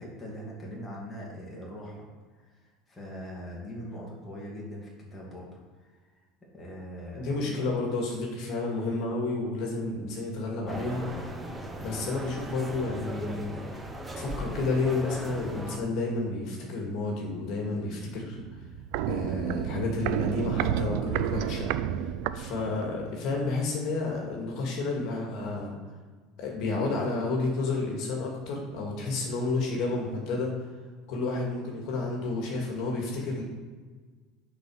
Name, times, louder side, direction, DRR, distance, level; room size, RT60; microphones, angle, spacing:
voice 1, 0.0-2.1 2.4-2.6 2.9-6.0 6.5-7.7, equal, 5° left, -5 dB, 2.3 m, -41 dB
voice 2, 7.2-11.1 11.8-13.5 14.2-18.4 19.1-21.7 22.0-25.8 26.4-30.5 31.1-33.4, left 3 dB, 50° left, -1 dB, 2.0 m, -31 dB
sound 1, 10.7-15.8, right 1 dB, 10° right, 0.8 m, -37 dB
Walk footsteps, 18.4-23.1 23.3-23.4, right 10 dB, 60° right, 0.4 m, -31 dB
9.3 x 4.4 x 6.3 m, 1.4 s
cardioid pair, 165°, 0 cm